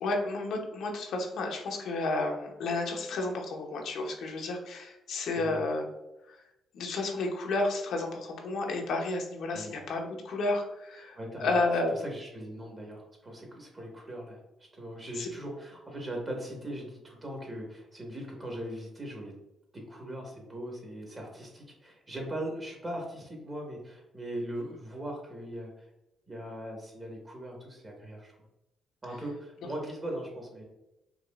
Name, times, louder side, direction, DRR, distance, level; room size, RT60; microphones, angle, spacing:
voice 1, 0.0-5.8 6.3-6.4 6.7-11.9 15.2-15.3, left 2 dB, 75° left, 1 dB, 0.8 m, -31 dB
voice 2, 5.3-5.6 9.5-9.8 11.1-11.6 11.9-19.3 19.7-25.9 26.3-28.3 29.0-30.6, right 1 dB, 30° right, 0 dB, 1.5 m, -40 dB
4.7 x 2.9 x 2.5 m, 0.92 s
cardioid pair, 85°, 0 cm